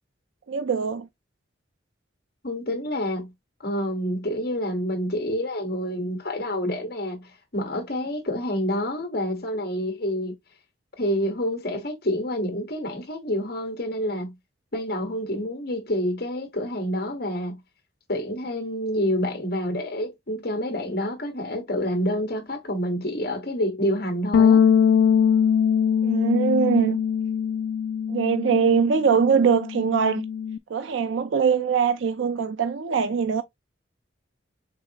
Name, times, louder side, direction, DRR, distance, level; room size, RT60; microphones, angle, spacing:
voice 1, 0.5-1.1 26.0-27.0 28.1-30.3 30.7-33.4, right 6 dB, 80° right, 0.4 m, -22 dB
voice 2, 2.4-3.3 3.6-10.3 11.0-14.3 14.7-17.6 18.1-24.6, equal, 55° left, 1.2 m, -28 dB
Bass guitar, 24.3-30.6, left 7 dB, 75° left, 0.3 m, -22 dB
5.1 x 3.7 x 2.7 m
head